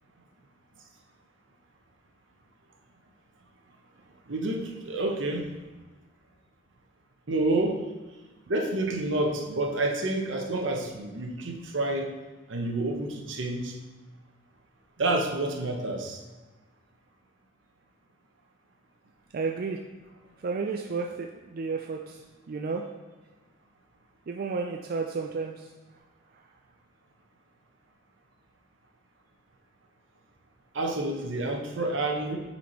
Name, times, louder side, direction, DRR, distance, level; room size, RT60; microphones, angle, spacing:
voice 1, 4.3-5.5 7.3-7.8 8.5-12.1 12.5-13.7 15.0-16.2 30.7-32.4, right 2 dB, 80° right, 2 dB, 0.9 m, -28 dB
voice 2, 19.3-19.8 20.4-22.9 24.3-25.7, right 4 dB, 50° right, 1 dB, 0.4 m, -32 dB
5.8 x 4.4 x 4.4 m, 1.2 s
head